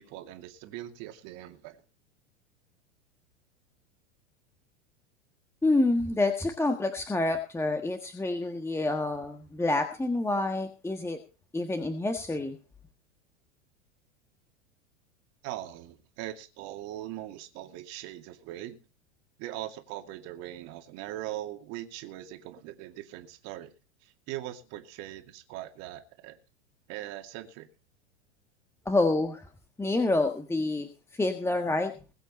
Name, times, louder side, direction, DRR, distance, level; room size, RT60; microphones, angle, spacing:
voice 1, 0.0-1.8 15.4-18.8 19.4-23.7 24.0-26.4 26.9-27.7, right 14 dB, 45° right, 6 dB, 2.4 m, -40 dB
voice 2, 5.6-11.2 11.5-12.6 28.8-29.4 29.8-31.9, left 2 dB, 5° left, 6 dB, 1.5 m, -28 dB
21.0 x 8.1 x 4.3 m, 0.35 s
figure-of-eight pair, 95°, 36 cm